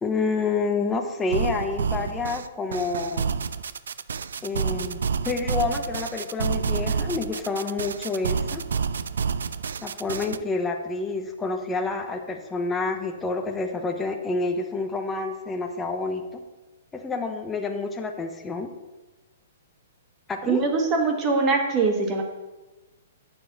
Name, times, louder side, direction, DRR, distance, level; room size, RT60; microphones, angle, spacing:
voice 1, 0.0-3.3 4.4-8.6 9.8-16.4 16.9-18.7 20.3-20.6, left 3 dB, 10° left, 3 dB, 0.7 m, -28 dB
sound 1, 1.3-10.4, right 6 dB, 85° right, 0.4 m, -29 dB
voice 2, 20.5-22.2, right 4 dB, 25° right, 2 dB, 1.5 m, -22 dB
9.5 x 7.0 x 4.1 m, 1.1 s
hypercardioid pair, 150°, 0 cm